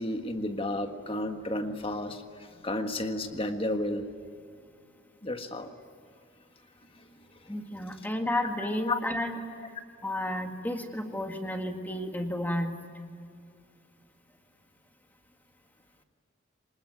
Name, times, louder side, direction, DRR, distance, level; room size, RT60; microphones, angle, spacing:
voice 1, 0.0-2.2 2.5-4.1 5.2-5.7 8.0-8.1 8.9-9.0, left 1 dB, 25° left, 6 dB, 1.6 m, -32 dB
voice 2, 7.5-9.3 10.0-12.7, left 1 dB, 10° left, 4 dB, 1.9 m, -32 dB
25.0 x 20.5 x 9.7 m, 2.4 s
head